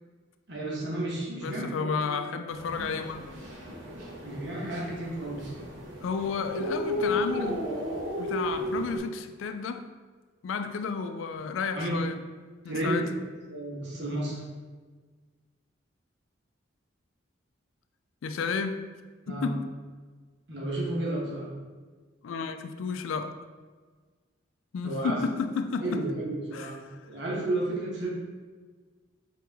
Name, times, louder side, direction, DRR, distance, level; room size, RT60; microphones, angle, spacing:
voice 1, 0.5-2.2 4.2-5.7 11.7-12.1 12.6-13.0 13.5-14.4 19.3-19.5 20.5-21.5 24.8-25.2 25.8-28.1, right 1 dB, 60° right, -5 dB, 1.2 m, -32 dB
voice 2, 1.4-3.2 6.0-7.7 8.2-9.9 10.4-12.2 12.6-13.1 18.2-18.9 19.3-19.7 22.2-23.4 24.7-26.0 26.5-26.7, left 5 dB, 80° left, 8 dB, 0.3 m, -32 dB
sound 1, 2.5-9.0, left 1 dB, 85° right, 1.2 m, -34 dB
4.9 x 3.1 x 3.4 m, 1.4 s
head